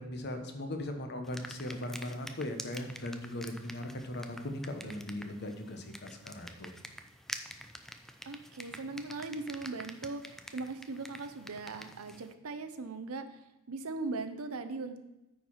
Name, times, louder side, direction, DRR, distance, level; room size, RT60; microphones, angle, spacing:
voice 1, 0.0-6.7, left 1 dB, 50° left, 5 dB, 1.1 m, -39 dB
sound 1, 1.2-12.3, equal, ahead, 0.4 m, -48 dB
voice 2, 8.2-15.0, right 3 dB, 85° right, 9 dB, 0.8 m, -39 dB
9.2 x 4.8 x 5.6 m, 0.98 s
head